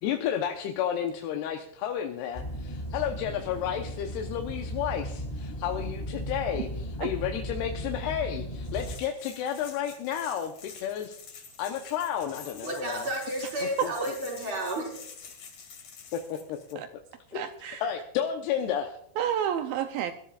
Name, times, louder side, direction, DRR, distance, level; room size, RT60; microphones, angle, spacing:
voice 1, 0.0-13.0 13.8-13.9 16.1-16.6 17.8-19.0, left 9 dB, 75° left, 3 dB, 2.9 m, -32 dB
sound 1, 2.3-8.9, equal, 25° left, 0.9 m, -36 dB
sound 2, 8.6-16.7, left 6 dB, 55° left, 3.8 m, -47 dB
voice 2, 12.6-15.1, right 1 dB, 55° right, -1 dB, 6.4 m, -32 dB
voice 3, 17.4-17.9 19.2-20.1, right 9 dB, 80° right, 8 dB, 2.1 m, -29 dB
24.0 x 13.5 x 2.5 m, 0.67 s
omnidirectional pair, 4.9 m